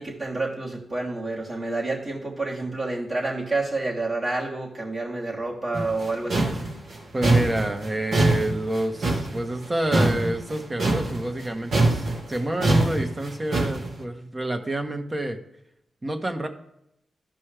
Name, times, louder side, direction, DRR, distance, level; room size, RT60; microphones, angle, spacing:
voice 1, 0.0-6.5, right 2 dB, 45° right, -4 dB, 3.1 m, -29 dB
sound 1, 5.7-11.5 11.7-13.9, right 2 dB, 65° right, 1.7 m, -23 dB
voice 2, 7.1-15.4 16.0-16.5, right 1 dB, 30° right, 5 dB, 1.2 m, -28 dB
13.0 x 5.3 x 3.4 m, 0.81 s
supercardioid pair, 45°, 0 cm